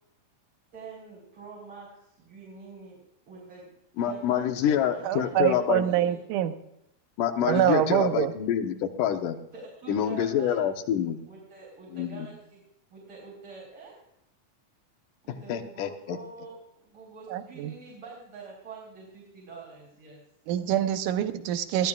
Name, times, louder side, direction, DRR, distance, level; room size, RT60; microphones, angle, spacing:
voice 1, 0.7-1.9 2.1-3.0 3.3-3.7 4.0-6.2 7.5-7.6 9.5-10.7 11.3-12.6 12.9-13.9 15.2-20.2, right 4 dB, 40° right, -6 dB, 4.8 m, -45 dB
voice 2, 4.0-5.8 7.2-9.4 9.9-11.2 11.9-12.3 15.5-16.2, left 9 dB, 85° left, 7 dB, 2.6 m, -27 dB
voice 3, 5.0-6.5 7.4-8.3 17.3-17.7 20.5-21.9, right 11 dB, 80° right, 9 dB, 2.3 m, -25 dB
20.5 x 15.0 x 2.4 m, 0.78 s
omnidirectional pair, 3.7 m